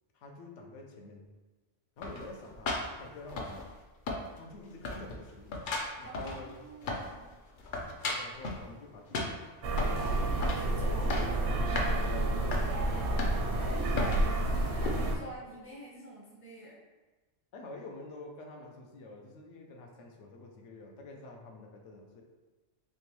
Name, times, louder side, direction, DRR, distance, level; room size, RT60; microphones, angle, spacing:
voice 1, 0.1-1.3 2.0-3.6 4.3-5.6 6.0-6.6 8.0-9.4 11.8-12.6 13.7-14.6 17.5-22.2, left 2 dB, 80° left, 1 dB, 0.9 m, -48 dB
sound 1, 2.0-3.8 4.1-4.6 4.8-7.2 7.5-8.6 9.1-10.0 10.4-10.7 10.9-11.4 11.8-11.9 12.5-12.7 13.2-13.6 14.0-14.3 14.8-15.0, left 2 dB, 55° left, 0.6 m, -35 dB
voice 2, 6.0-7.3 10.0-11.1 13.2-16.8, right 1 dB, 20° right, -5 dB, 0.4 m, -45 dB
sound 2, 9.6-15.2, right 1 dB, 75° right, 0.9 m, -30 dB
3.4 x 3.0 x 3.0 m, 1.2 s
omnidirectional pair, 1.2 m